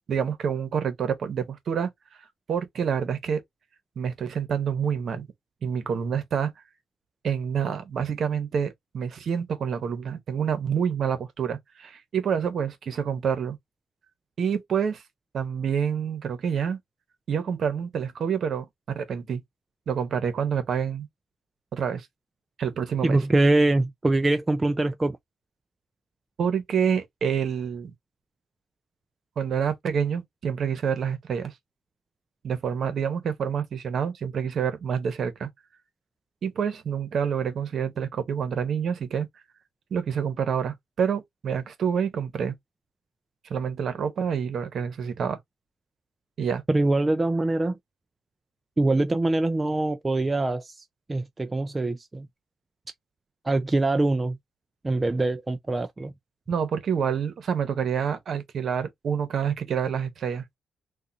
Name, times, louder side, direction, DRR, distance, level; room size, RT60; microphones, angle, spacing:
voice 1, 0.1-1.9 2.5-3.4 4.0-5.3 5.6-6.5 7.2-13.6 14.4-15.0 15.3-16.8 17.3-18.7 18.9-19.4 19.9-21.1 21.7-22.1 22.6-23.2 26.4-27.9 29.4-31.5 32.4-35.5 36.4-39.3 39.9-42.5 43.5-45.4 46.4-46.6 56.5-60.4, right 7 dB, 60° right, 1.0 m, -27 dB
voice 2, 23.0-25.2 46.7-47.8 48.8-50.7 51.1-52.3 53.5-54.4 54.8-56.1, right 2 dB, 20° right, 0.4 m, -23 dB
3.7 x 2.4 x 2.8 m
cardioid pair, 105°, 0 cm